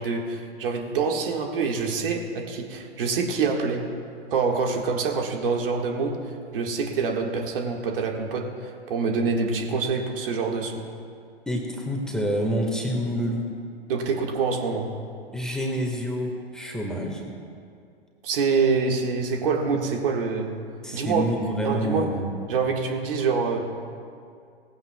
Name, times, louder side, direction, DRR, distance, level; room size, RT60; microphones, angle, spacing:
voice 1, 0.0-3.9 4.3-6.2 6.5-10.7 13.9-14.9 18.2-20.5 20.9-21.2 21.6-22.1 22.5-23.7, right 4 dB, 60° right, 1 dB, 1.7 m, -26 dB
voice 2, 11.5-13.5 15.3-17.3 20.8-22.3, equal, ahead, 0 dB, 1.6 m, -27 dB
18.5 x 15.0 x 2.3 m, 2.3 s
figure-of-eight pair, 105°, 32 cm